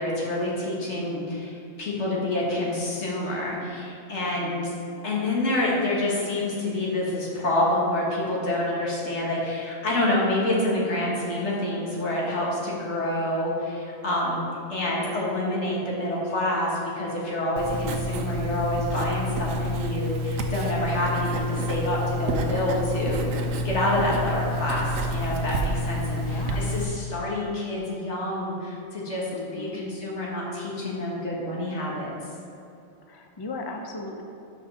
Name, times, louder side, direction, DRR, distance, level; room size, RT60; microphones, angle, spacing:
voice 1, 0.0-1.5 1.8-4.7 5.0-14.4 14.7-23.2 23.6-29.3 29.5-32.1, left 1 dB, 60° left, -4 dB, 1.8 m, -27 dB
voice 2, 0.9-1.5 4.2-4.8 17.7-18.0 26.2-26.6 29.3-29.8 33.1-34.2, left 3 dB, 40° left, 3 dB, 0.3 m, -37 dB
Writing, 17.6-26.9, equal, 80° right, 1.0 m, -28 dB
5.7 x 5.2 x 6.1 m, 2.8 s
omnidirectional pair, 1.4 m